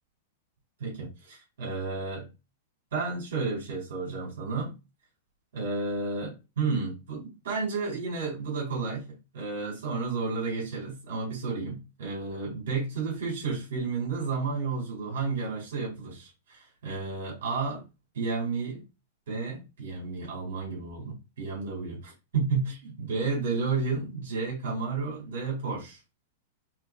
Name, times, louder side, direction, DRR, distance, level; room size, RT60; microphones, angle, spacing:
voice 1, 0.8-2.3 2.9-4.7 5.5-9.1 9.3-17.8 18.1-18.8 19.3-26.0, right 4 dB, 80° right, -2 dB, 2.5 m, -32 dB
4.6 x 2.4 x 3.5 m, 0.27 s
supercardioid pair, 160°, 0 cm